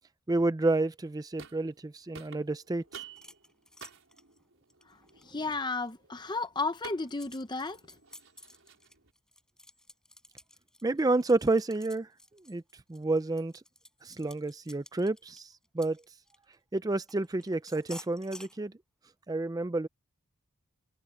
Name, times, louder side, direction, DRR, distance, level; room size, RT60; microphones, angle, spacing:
voice 1, 0.3-3.0 10.8-12.1 12.5-12.6 12.9-13.5 14.0-16.0 16.7-18.7 19.3-19.9, right 2 dB, 15° right, 0.4 m, -29 dB
sound 1, 1.0-1.9 2.1-9.1, right 5 dB, 70° right, 5.4 m, -52 dB
sound 2, 3.1-5.9 6.4-16.5 17.1-18.6, left 1 dB, 5° left, 7.2 m, -53 dB
voice 2, 5.3-7.8, left 3 dB, 20° left, 0.7 m, -33 dB
head